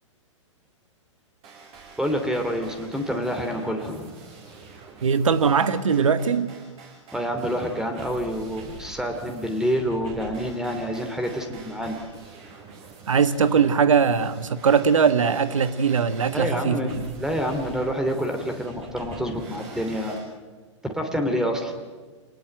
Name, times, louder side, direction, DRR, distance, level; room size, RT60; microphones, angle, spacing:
sound 1, 1.4-20.2, right 5 dB, 35° right, 7.0 m, -45 dB
voice 1, 2.0-4.1 7.1-12.0 16.3-20.2 20.8-21.8, equal, 5° right, 5 dB, 2.7 m, -27 dB
voice 2, 5.0-6.5 13.1-17.1, right 6 dB, 85° right, 13 dB, 1.5 m, -21 dB
26.5 x 19.5 x 9.1 m, 1.4 s
hypercardioid pair, 125°, 16 cm